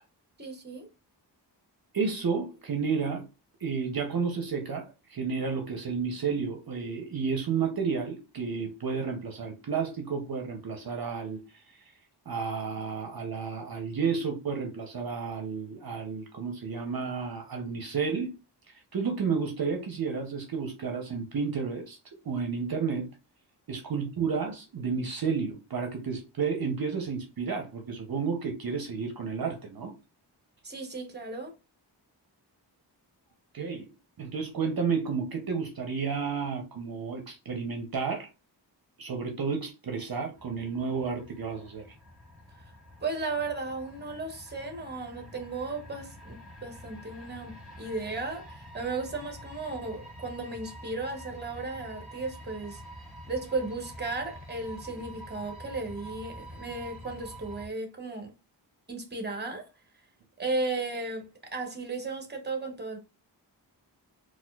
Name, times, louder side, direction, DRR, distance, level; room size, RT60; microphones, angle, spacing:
voice 1, 0.4-0.9 30.6-31.5 43.0-52.8 53.3-58.3 58.9-59.7 60.4-63.0, right 3 dB, 25° right, 1.0 m, -35 dB
voice 2, 1.9-3.3 3.6-11.4 12.3-18.3 18.9-22.0 22.2-23.1 23.7-29.9 33.5-33.9 34.2-38.3 39.0-42.0, right 5 dB, 55° right, 0.7 m, -31 dB
sound 1, 40.4-57.7, equal, ahead, 1.9 m, -47 dB
4.2 x 2.4 x 2.3 m
wide cardioid pair, 85°, 42 cm